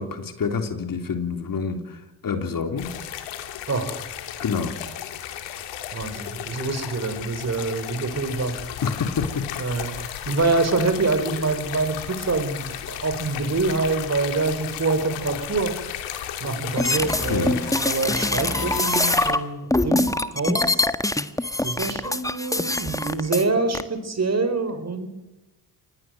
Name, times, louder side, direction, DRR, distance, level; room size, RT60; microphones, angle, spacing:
voice 1, 0.0-2.9 4.4-4.7 8.8-9.5 9.9-10.3 17.3-17.6 21.8-21.9, left 5 dB, 50° left, 7 dB, 3.2 m, -28 dB
sound 1, 2.8-19.3, left 11 dB, 85° left, 2.8 m, -34 dB
voice 2, 5.9-8.6 9.6-10.0 10.3-15.7 16.4-20.9 21.6-25.1, right 3 dB, 35° right, 10 dB, 4.9 m, -26 dB
sound 2, 16.8-19.4 19.7-23.4 23.7-23.8, left 2 dB, 10° left, 1.6 m, -24 dB
25.5 x 20.0 x 7.9 m, 0.95 s
supercardioid pair, 60°, 42 cm